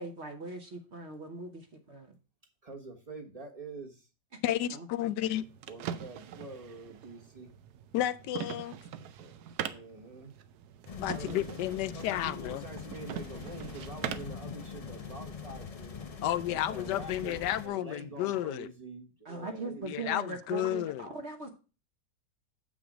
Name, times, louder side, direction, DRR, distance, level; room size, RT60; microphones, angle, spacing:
voice 1, 0.0-2.2 4.7-4.9 19.2-21.5, right 3 dB, 45° right, 1.2 m, -40 dB
voice 2, 2.6-4.1 5.7-7.5 9.0-9.3 9.7-10.4 11.1-11.5 11.8-16.0 16.5-19.9, right 3 dB, 25° right, 1.2 m, -46 dB
voice 3, 4.4-5.4 7.9-8.8 11.0-12.6 16.2-18.7 19.8-21.0, left 12 dB, 80° left, 1.2 m, -32 dB
sound 1, 5.2-14.4, right 9 dB, 70° right, 1.2 m, -42 dB
sound 2, 10.9-17.7, left 5 dB, 40° left, 0.5 m, -43 dB
7.6 x 6.1 x 4.8 m
omnidirectional pair, 1.8 m